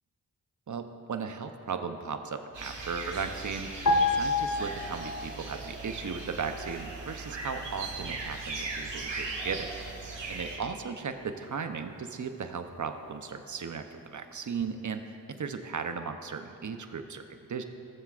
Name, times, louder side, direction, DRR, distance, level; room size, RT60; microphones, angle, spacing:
voice 1, 0.7-3.7 4.1-9.7 10.3-17.6, right 5 dB, 45° right, 7 dB, 0.8 m, -36 dB
sound 1, 2.5-10.6, right 3 dB, 80° right, 1.6 m, -38 dB
sound 2, 3.9-5.5 5.8-6.0, left 2 dB, 45° left, 1.0 m, -27 dB
17.0 x 7.2 x 2.5 m, 2.8 s
cardioid pair, 45°, 42 cm